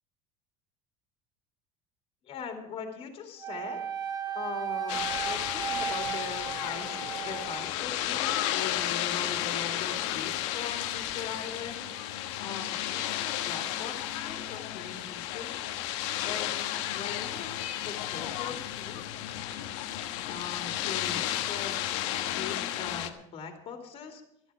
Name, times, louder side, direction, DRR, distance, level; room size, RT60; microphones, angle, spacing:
voice 1, 2.2-3.8 4.3-7.0 7.2-11.9 12.4-15.6 16.2-19.0 20.2-21.8 22.3-24.2, left 6 dB, 40° left, 4 dB, 2.6 m, -41 dB
Wind instrument woodwind instrument, 3.4-7.7, right 8 dB, 25° right, 1.8 m, -35 dB
sound 1, 4.9-23.1, left 12 dB, 80° left, 1.3 m, -33 dB
13.0 x 12.5 x 6.1 m, 0.77 s
cardioid pair, 140°, 15 cm